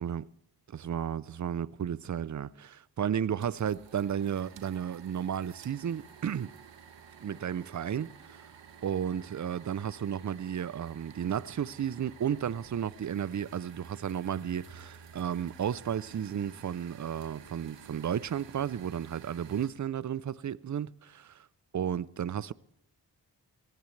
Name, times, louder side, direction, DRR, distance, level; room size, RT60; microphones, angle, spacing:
voice 1, 0.7-6.5 7.2-8.4 8.8-21.5 21.7-22.5, right 9 dB, 45° right, 0.6 m, -33 dB
sound 1, 3.4-19.7, right 7 dB, 90° right, 1.3 m, -52 dB
18.5 x 14.5 x 3.3 m
cardioid pair, 45°, 43 cm